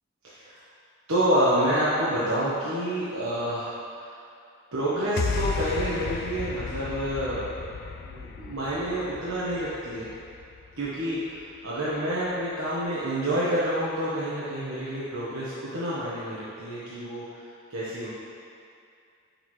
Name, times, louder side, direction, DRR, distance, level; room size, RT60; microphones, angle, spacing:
voice 1, 0.2-0.6 1.1-4.2 4.7-7.4 8.0-10.1 10.8-18.1, right 1 dB, 80° right, -9 dB, 1.2 m, -28 dB
sound 1, 5.2-11.6, left 5 dB, 50° left, 0.3 m, -34 dB
8.2 x 6.5 x 3.1 m, 2.4 s
head